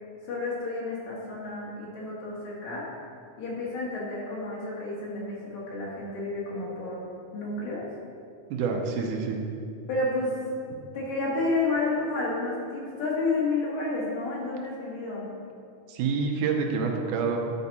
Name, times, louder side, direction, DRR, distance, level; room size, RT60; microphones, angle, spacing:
voice 1, 0.2-2.9 3.4-7.0 7.3-7.8 9.9-10.4 10.9-15.2, left 3 dB, 65° left, -5 dB, 2.9 m, -30 dB
voice 2, 8.5-9.4 15.9-17.4, right 5 dB, 80° right, 2 dB, 2.2 m, -27 dB
10.5 x 5.2 x 4.1 m, 2.4 s
omnidirectional pair, 3.7 m